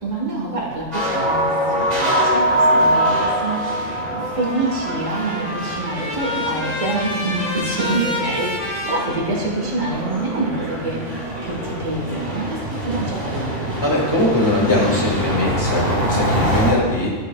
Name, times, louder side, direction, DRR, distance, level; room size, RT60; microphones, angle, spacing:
voice 1, 0.0-13.8, right 2 dB, 75° right, -3 dB, 1.9 m, -26 dB
sound 1, 0.9-16.7, equal, 30° right, 2.1 m, -24 dB
Trumpet, 4.3-9.9, left 1 dB, 80° left, 2.6 m, -29 dB
voice 2, 13.8-17.1, left 1 dB, 20° left, -4 dB, 1.8 m, -20 dB
12.5 x 6.5 x 2.3 m, 1.5 s
omnidirectional pair, 1.3 m